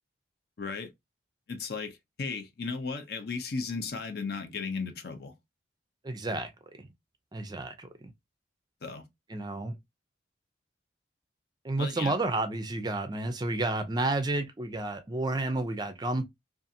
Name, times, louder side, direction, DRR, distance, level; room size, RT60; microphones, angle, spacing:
voice 1, 0.6-0.9 1.5-5.4 8.8-9.0 11.8-12.1, left 4 dB, 55° left, 0.6 m, -35 dB
voice 2, 6.0-6.5 7.3-7.9 9.3-9.8 11.6-16.2, right 2 dB, 20° right, 0.4 m, -30 dB
2.6 x 2.4 x 2.6 m
head